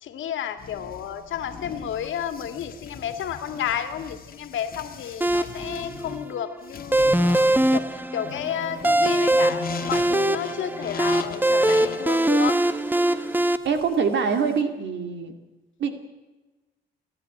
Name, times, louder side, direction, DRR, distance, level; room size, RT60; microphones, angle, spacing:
voice 1, 0.0-12.6, left 9 dB, 75° left, 9 dB, 2.1 m, -32 dB
sound 1, 0.6-14.6, left 5 dB, 45° left, 1.7 m, -39 dB
sound 2, 5.2-13.6, right 1 dB, 10° right, 1.0 m, -22 dB
voice 2, 13.6-15.3 15.8-15.9, right 6 dB, 65° right, 7 dB, 2.4 m, -24 dB
28.0 x 11.0 x 9.0 m, 1.1 s
cardioid pair, 90°, 20 cm